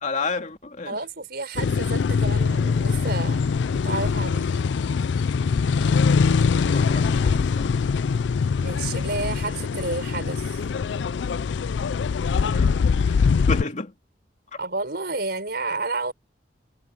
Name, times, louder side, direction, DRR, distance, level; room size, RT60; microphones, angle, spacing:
voice 1, 0.0-1.0 5.8-6.2 6.7-7.7 12.4-12.7 13.5-13.9, left 3 dB, 45° left, 2.6 m, -31 dB
voice 2, 0.8-4.6 8.6-10.6 14.6-16.1, right 3 dB, 60° right, 5.0 m, -31 dB
sound 1, 1.6-13.6, left 5 dB, 75° left, 0.4 m, -23 dB
head